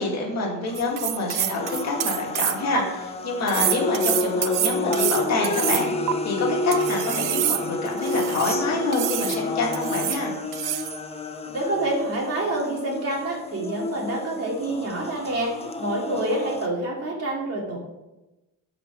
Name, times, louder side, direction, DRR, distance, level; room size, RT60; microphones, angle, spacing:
voice 1, 0.0-10.3, left 2 dB, 50° left, -2 dB, 2.4 m, -27 dB
sound 1, 0.7-16.7, left 2 dB, 15° left, 0.6 m, -30 dB
sound 2, 0.7-2.8 3.5-6.1 6.7-8.6 8.9-9.4 9.7-10.2 10.5-11.0, right 13 dB, 65° right, 0.5 m, -27 dB
voice 2, 11.4-17.8, right 1 dB, 40° right, -1 dB, 2.5 m, -27 dB
13.0 x 5.0 x 4.6 m, 1.0 s
cardioid pair, 170°, 35 cm